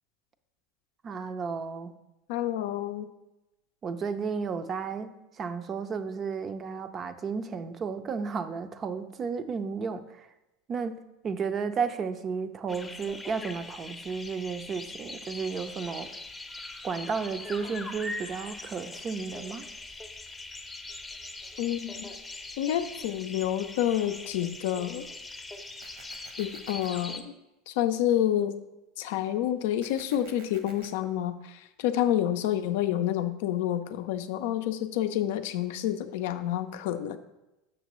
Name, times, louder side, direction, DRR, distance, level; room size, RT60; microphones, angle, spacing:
voice 1, 1.0-1.9 3.8-10.3 10.7-16.1 16.8-19.6, right 5 dB, 35° right, 11 dB, 0.5 m, -33 dB
voice 2, 2.3-3.1 21.6-22.1 22.6-25.1 26.4-27.3 27.7-28.6 29.0-37.2, left 11 dB, 70° left, 10 dB, 0.4 m, -28 dB
sound 1, 12.7-27.2, left 2 dB, 10° left, 0.6 m, -42 dB
sound 2, 25.8-26.9 29.8-30.9, right 5 dB, 70° right, 1.1 m, -52 dB
6.4 x 6.1 x 3.0 m, 0.98 s
hypercardioid pair, 95°, 0 cm